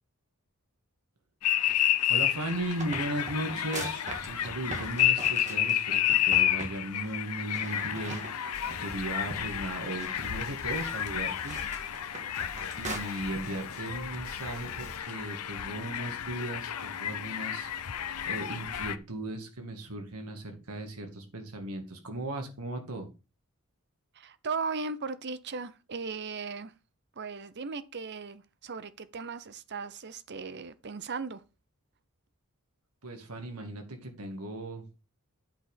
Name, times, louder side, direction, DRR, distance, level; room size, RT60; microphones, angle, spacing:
sound 1, 1.4-19.0, left 11 dB, 90° left, 0.7 m, -31 dB
voice 1, 2.1-11.6 12.8-17.7 18.3-23.1 33.0-34.8, right 1 dB, 80° right, 2.4 m, -37 dB
sound 2, 2.2-6.0 6.3-6.8 7.0-7.2 7.5-8.9 9.3-13.0, right 2 dB, 35° right, 2.2 m, -42 dB
sound 3, 8.5-15.0, left 1 dB, 70° left, 2.0 m, -48 dB
voice 2, 24.1-26.7 27.2-31.4, right 4 dB, 50° right, 0.7 m, -37 dB
8.6 x 5.3 x 5.7 m
head